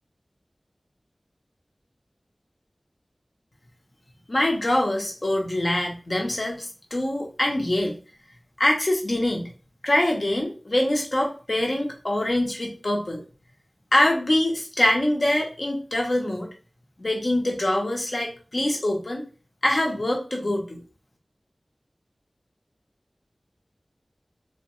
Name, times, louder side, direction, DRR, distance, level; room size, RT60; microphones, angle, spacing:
voice 1, 4.3-8.0 8.6-9.5 9.8-13.2 13.9-16.5 17.0-19.2 19.6-20.8, left 1 dB, 55° left, 1 dB, 0.8 m, -24 dB
3.1 x 2.2 x 3.0 m, 0.36 s
wide cardioid pair, 45°, 0 cm